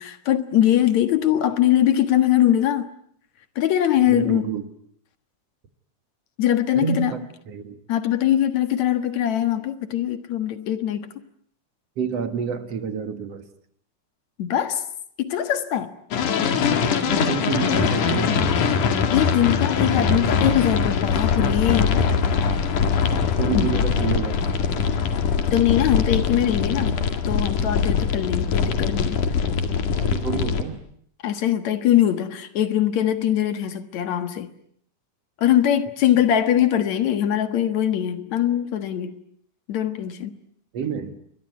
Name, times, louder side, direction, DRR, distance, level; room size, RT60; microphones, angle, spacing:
voice 1, 0.0-2.9 3.6-4.4 6.4-7.2 7.9-11.1 14.4-14.8 15.2-15.9 19.1-22.0 23.5-23.7 25.5-26.9 27.3-29.2 31.2-34.5 35.4-39.2 39.7-40.3, left 11 dB, 65° left, 2.7 m, -22 dB
voice 2, 4.1-4.6 6.7-7.2 7.5-7.8 12.0-13.5 17.0-18.5 23.4-24.5 30.0-30.8 40.7-41.2, right 6 dB, 55° right, 2.6 m, -28 dB
sound 1, 16.1-30.6, left 6 dB, 85° left, 3.6 m, -22 dB
28.5 x 22.5 x 9.4 m
omnidirectional pair, 3.5 m